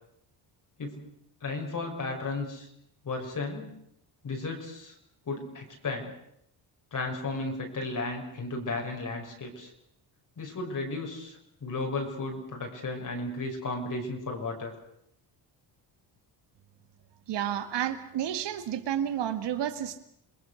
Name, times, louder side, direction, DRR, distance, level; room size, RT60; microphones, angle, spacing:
voice 1, 1.4-2.7 3.0-3.7 4.2-5.0 5.3-6.1 6.9-9.7 10.4-14.8, left 3 dB, 45° left, 1 dB, 5.8 m, -34 dB
voice 2, 17.3-20.0, right 10 dB, 70° right, 10 dB, 2.0 m, -31 dB
28.5 x 20.0 x 6.4 m, 0.74 s
cardioid pair, 100°, 44 cm